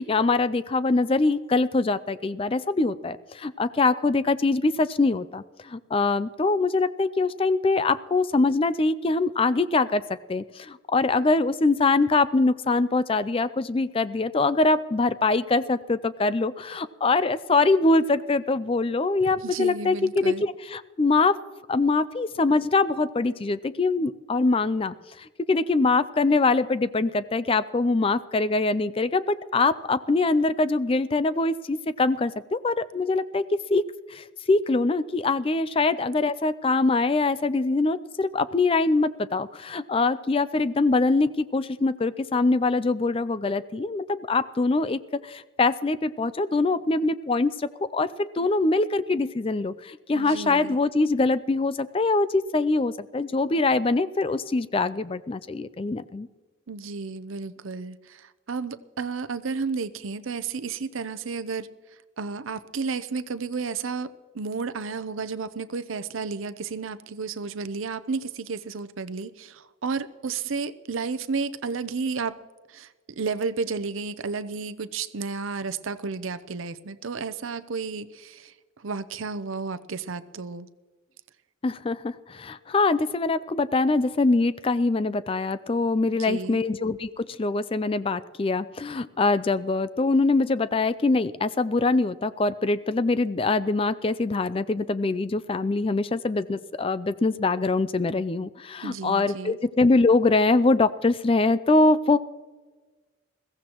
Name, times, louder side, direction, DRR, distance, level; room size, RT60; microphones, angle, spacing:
voice 1, 0.0-10.0 10.3-21.4 21.7-56.3 81.6-102.2, left 3 dB, 25° left, 15 dB, 0.4 m, -23 dB
voice 2, 19.4-20.5 50.1-50.8 56.7-61.7 62.2-72.4 72.7-80.7 86.2-86.6 98.8-99.6, right 4 dB, 75° right, 14 dB, 0.7 m, -32 dB
21.5 x 15.5 x 3.0 m, 1.3 s
head